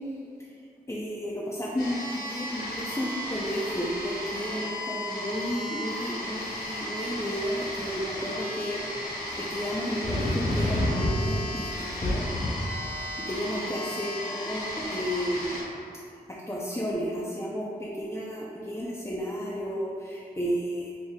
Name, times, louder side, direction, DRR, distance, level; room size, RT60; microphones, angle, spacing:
voice 1, 0.9-9.1 9.4-12.4 12.9-15.6 16.3-20.9, equal, 15° left, -6 dB, 0.5 m, -32 dB
sound 1, 1.8-15.6, left 1 dB, 80° left, 1.2 m, -35 dB
sound 2, 10.0-13.0, left 1 dB, 55° left, 0.9 m, -28 dB
4.2 x 2.0 x 3.5 m, 2.4 s
cardioid pair, 50°, 17 cm